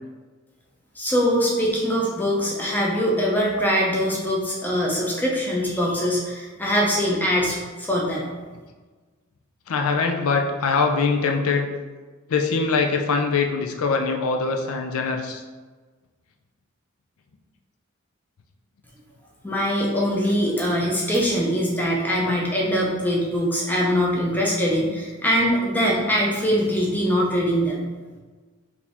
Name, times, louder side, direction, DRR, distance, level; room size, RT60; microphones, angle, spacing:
voice 1, 1.0-8.4 19.4-27.8, equal, 10° left, -3 dB, 0.7 m, -22 dB
voice 2, 9.7-11.7 12.3-15.4, left 4 dB, 80° left, 3 dB, 0.5 m, -22 dB
4.8 x 2.8 x 3.4 m, 1.4 s
head